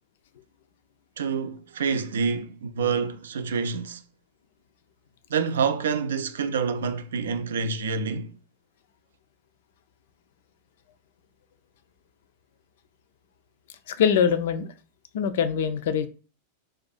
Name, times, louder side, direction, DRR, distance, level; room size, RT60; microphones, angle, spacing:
voice 1, 1.2-4.0 5.3-8.4, right 5 dB, 65° right, 0.3 m, -27 dB
voice 2, 13.9-14.7 15.1-16.1, left 7 dB, 55° left, 0.3 m, -23 dB
2.5 x 2.3 x 4.1 m
figure-of-eight pair, 90°, 0 cm